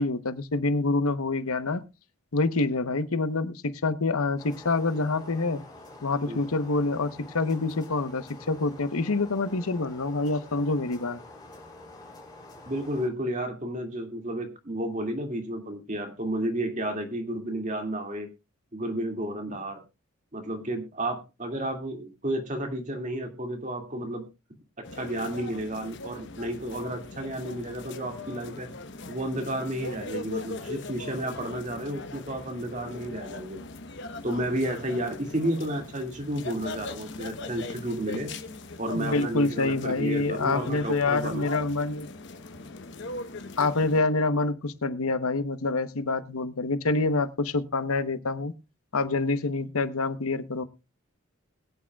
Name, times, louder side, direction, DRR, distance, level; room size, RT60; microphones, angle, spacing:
voice 1, 0.0-1.8 2.3-5.6 6.0-11.2 38.9-42.1 43.6-48.5 48.9-50.6, left 3 dB, 90° left, 12 dB, 1.0 m, -26 dB
sound 1, 4.4-13.1, left 2 dB, 20° left, 3.5 m, -47 dB
voice 2, 12.6-18.3 18.7-19.8 20.3-24.2 24.9-28.7 29.1-33.6 34.2-38.3 38.8-41.5, right 1 dB, 35° right, 4 dB, 2.2 m, -32 dB
sound 2, 24.8-44.0, left 3 dB, 55° left, 1.0 m, -40 dB
21.5 x 8.7 x 2.3 m, 0.26 s
head